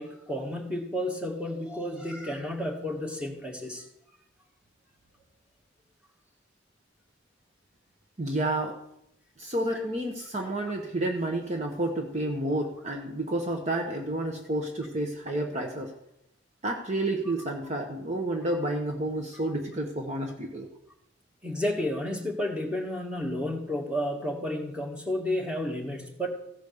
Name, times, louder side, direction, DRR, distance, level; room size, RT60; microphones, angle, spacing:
voice 1, 0.0-3.8 21.4-26.3, left 1 dB, 5° right, 0 dB, 1.7 m, -31 dB
voice 2, 8.2-8.8 9.4-15.9 16.6-20.7, right 1 dB, 35° right, 2 dB, 1.0 m, -30 dB
15.0 x 5.1 x 6.5 m, 0.79 s
head